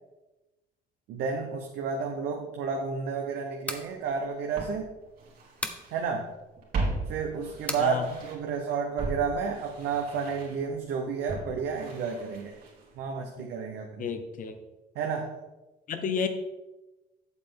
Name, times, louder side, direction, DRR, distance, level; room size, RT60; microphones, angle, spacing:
voice 1, 1.1-4.9 5.9-6.3 7.1-12.5 13.0-14.1 15.0-15.4, right 5 dB, 80° right, 2 dB, 1.0 m, -31 dB
sound 1, 3.5-3.9 5.6-5.9 7.7-7.9, left 1 dB, 10° left, 0.8 m, -34 dB
Walk footsteps, 3.8-3.9 4.5-6.0 6.3-8.6 9.0-13.0 13.3-13.4, right 3 dB, 60° right, 2.6 m, -37 dB
voice 2, 14.0-14.5 15.9-16.3, left 6 dB, 50° left, 7 dB, 1.0 m, -31 dB
8.3 x 6.9 x 3.8 m, 1.0 s
cardioid pair, 110°, 17 cm